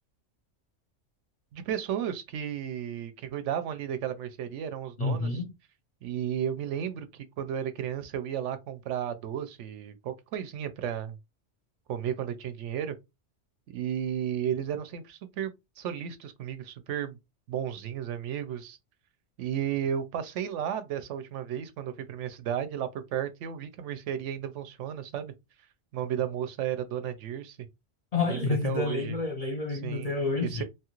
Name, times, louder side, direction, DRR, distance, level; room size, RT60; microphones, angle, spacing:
voice 1, 1.5-5.4 6.0-11.2 11.9-13.0 13.7-17.2 17.5-18.8 19.4-25.3 25.9-27.6 28.3-29.2 29.8-30.1 30.4-30.6, right 9 dB, 85° right, 0.9 m, -33 dB
voice 2, 5.0-5.4 28.1-30.6, left 3 dB, 45° left, 0.6 m, -29 dB
2.9 x 2.4 x 2.9 m
omnidirectional pair, 1.2 m